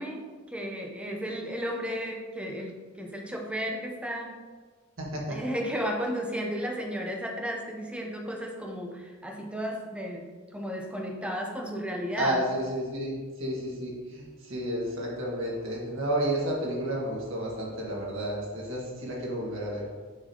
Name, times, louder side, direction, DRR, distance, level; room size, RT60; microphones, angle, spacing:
voice 1, 0.0-4.4 5.3-12.5, equal, 5° right, 1 dB, 0.7 m, -34 dB
voice 2, 5.0-5.4 12.2-13.1 13.4-19.9, right 1 dB, 60° right, -3 dB, 1.8 m, -31 dB
7.0 x 6.0 x 2.9 m, 1.4 s
head